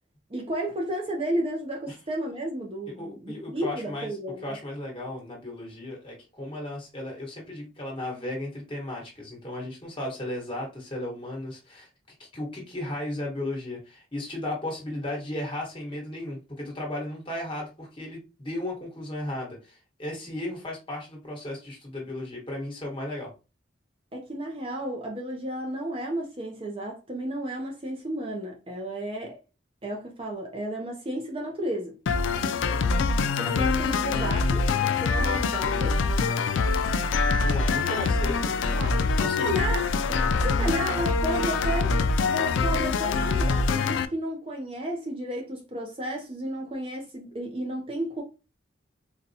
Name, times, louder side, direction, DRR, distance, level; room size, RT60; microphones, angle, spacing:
voice 1, 0.3-4.5 24.1-29.4 29.8-32.0 33.4-36.0 38.8-39.0 39.4-39.8 40.1-41.9 42.3-48.2, right 1 dB, 30° right, 0.5 m, -32 dB
voice 2, 2.9-4.1 4.4-11.9 12.2-23.3 32.4-32.6 37.4-39.6, left 1 dB, 25° left, 1.2 m, -35 dB
sound 1, 32.1-44.1, left 4 dB, 75° left, 0.3 m, -24 dB
4.0 x 2.2 x 2.7 m
head